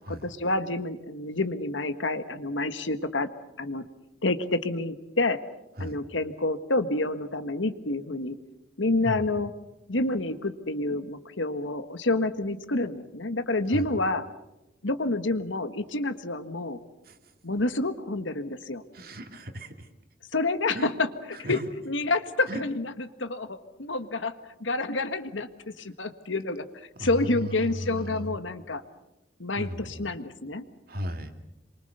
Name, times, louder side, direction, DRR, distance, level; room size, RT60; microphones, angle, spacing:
voice 1, 0.1-3.3 3.6-3.9 4.2-5.4 5.8-8.4 8.8-9.5 9.9-14.2 14.8-16.8 17.4-18.8 20.3-21.1 21.5-21.6 21.9-22.9 23.2-24.3 24.6-26.6 27.0-28.8 29.4-30.6, left 2 dB, 80° left, 10 dB, 1.6 m, -28 dB
voice 2, 18.9-19.9 20.7-20.9 21.3-21.6 22.5-22.6 27.0-28.4 29.6-30.1 30.9-31.3, equal, 50° right, 6 dB, 2.4 m, -36 dB
27.5 x 24.0 x 6.8 m, 0.91 s
head